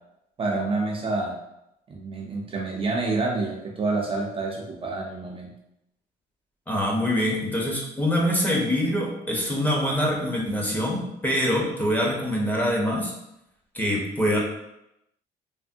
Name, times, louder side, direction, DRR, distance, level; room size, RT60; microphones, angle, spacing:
voice 1, 0.4-1.4 1.9-5.5, right 3 dB, 35° right, -1 dB, 0.4 m, -28 dB
voice 2, 6.7-13.1 13.7-14.4, equal, 10° left, -2 dB, 0.7 m, -24 dB
3.3 x 2.0 x 2.6 m, 0.83 s
cardioid pair, 110°, 17 cm